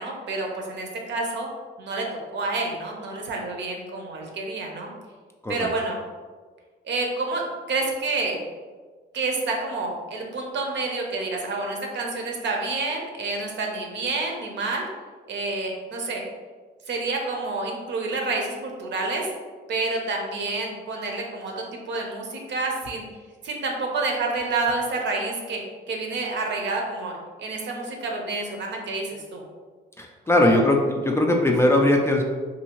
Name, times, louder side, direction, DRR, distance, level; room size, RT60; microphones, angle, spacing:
voice 1, 0.0-1.5 1.8-2.0 2.3-4.9 5.5-6.0 6.8-8.4 9.1-14.9 15.3-16.2 16.9-19.3 19.7-23.0 23.4-29.4 30.3-30.6 31.6-31.7, right 3 dB, 65° right, 1 dB, 0.7 m, -29 dB
voice 2, 30.0-32.2, left 1 dB, 15° left, 1 dB, 0.3 m, -20 dB
2.7 x 2.7 x 2.9 m, 1.4 s
cardioid pair, 90°, 20 cm